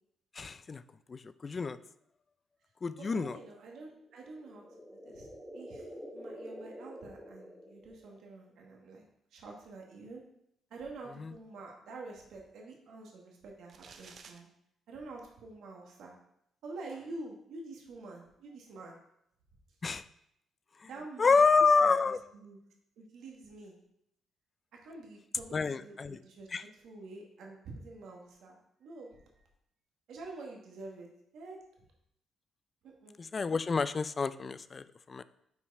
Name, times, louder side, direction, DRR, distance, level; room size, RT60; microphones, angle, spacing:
voice 1, 0.3-0.8 1.1-1.8 2.8-3.4 11.2-11.3 19.8-20.0 20.8-20.9 21.2-22.2 25.5-26.2 26.5-26.6 33.2-35.2, left 4 dB, 35° left, 15 dB, 0.3 m, -28 dB
voice 2, 3.0-4.6 4.9-5.9 6.1-9.0 9.3-10.2 10.7-14.5 14.9-16.2 16.6-19.0 20.8-21.4 21.8-22.6 23.0-23.8 24.8-29.5 30.1-31.1 31.3-31.6 32.8-33.2, right 3 dB, 75° right, 0 dB, 1.4 m, -47 dB
sound 1, 4.1-8.3, equal, ahead, 1.0 m, -48 dB
sound 2, 13.7-14.4, right 5 dB, 55° right, 0.6 m, -52 dB
5.9 x 4.5 x 4.6 m, 0.75 s
cardioid pair, 90°, 0 cm